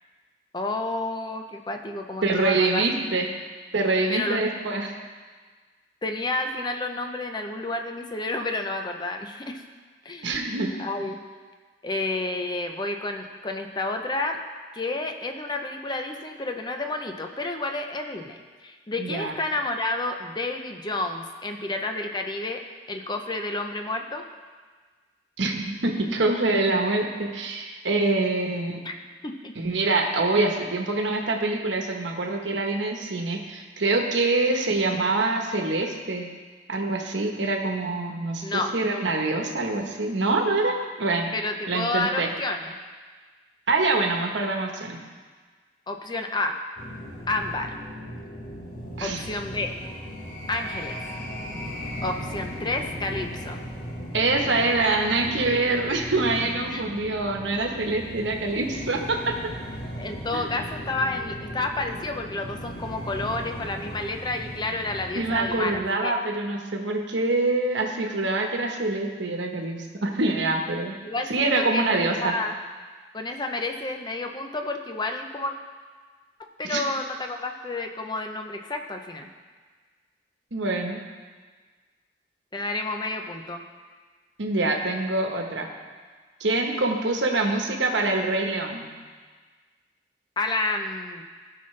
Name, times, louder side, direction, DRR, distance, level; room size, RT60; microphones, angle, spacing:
voice 1, 0.5-2.8 4.1-4.4 6.0-9.6 10.0-10.3 10.8-11.2 11.8-14.4 14.7-22.6 22.9-24.2 28.8-28.9 29.2-29.5 38.4-38.7 41.3-42.7 45.9-46.6 47.3-47.7 49.0-49.7 50.5-51.0 52.0-53.6 56.7-56.8 60.0-66.1 71.0-72.6 73.1-75.5 76.6-79.3 82.5-83.6 90.4-91.2, left 2 dB, 25° left, 4 dB, 0.6 m, -30 dB
voice 2, 2.2-3.3 3.7-4.9 10.2-10.7 19.0-19.4 25.4-28.8 29.6-36.3 36.7-41.3 41.7-42.3 43.7-45.0 49.0-49.2 54.1-59.3 60.3-60.4 65.1-71.0 71.3-72.3 76.6-76.8 80.5-81.0 84.4-85.7 86.4-88.9, right 2 dB, 85° right, 2 dB, 1.1 m, -25 dB
sound 1, 46.8-65.8, equal, 50° left, 1.4 m, -37 dB
16.0 x 5.6 x 3.3 m, 1.5 s
head